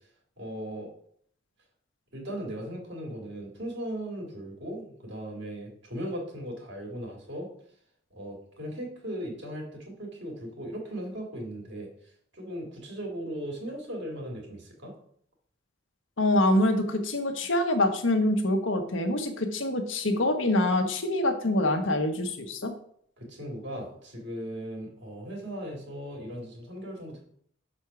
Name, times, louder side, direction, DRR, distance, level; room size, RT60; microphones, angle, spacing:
voice 1, 0.4-0.9 2.1-7.5 8.1-14.9 23.2-27.2, equal, 65° right, 0 dB, 2.4 m, -38 dB
voice 2, 16.2-22.7, left 1 dB, 80° left, 5 dB, 1.1 m, -25 dB
6.2 x 4.4 x 5.8 m, 0.63 s
head